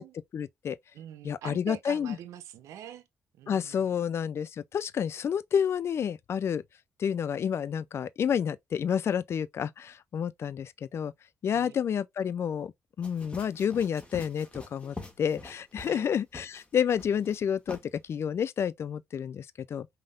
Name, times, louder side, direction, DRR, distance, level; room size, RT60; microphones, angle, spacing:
voice 1, 0.3-0.8 1.2-2.2 3.5-6.6 7.0-11.1 11.4-12.7 13.0-17.8 18.1-19.9, left 8 dB, 60° left, 0.4 m, -30 dB
voice 2, 0.9-3.1 3.3-4.0 11.5-11.8 15.8-16.1, right 10 dB, 85° right, 0.7 m, -44 dB
sound 1, 13.0-16.0 16.3-16.6 17.0-17.4 17.7-17.8, left 2 dB, 25° left, 1.7 m, -44 dB
5.3 x 3.5 x 2.4 m
cardioid pair, 70°, 5 cm